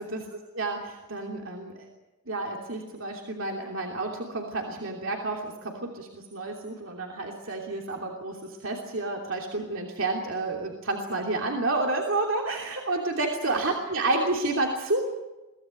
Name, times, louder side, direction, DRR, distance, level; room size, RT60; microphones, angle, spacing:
voice 1, 0.0-1.7 2.3-15.0, right 2 dB, 60° right, 1 dB, 3.0 m, -30 dB
24.0 x 17.0 x 9.0 m, 1.0 s
head